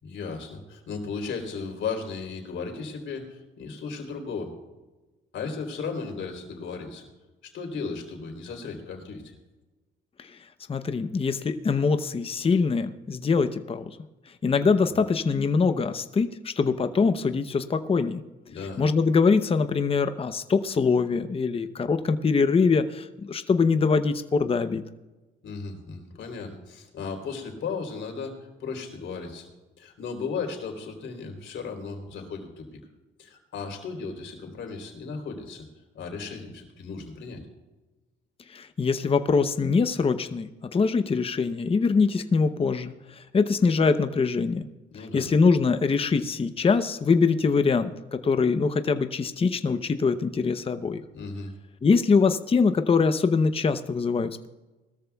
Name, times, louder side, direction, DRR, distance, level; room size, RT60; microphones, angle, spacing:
voice 1, 0.0-4.5 5.3-7.1 7.5-9.3 18.5-18.8 25.4-29.5 29.8-32.7 33.2-35.7 35.9-37.4 44.9-45.3 51.1-51.5, left 5 dB, 70° left, 3 dB, 3.5 m, -35 dB
voice 2, 10.7-13.9 14.4-18.2 18.8-24.8 38.5-44.7 44.9-51.0 51.8-54.5, left 4 dB, 30° left, 10 dB, 0.7 m, -23 dB
20.5 x 13.5 x 2.3 m, 1.1 s
cardioid pair, 90°, 20 cm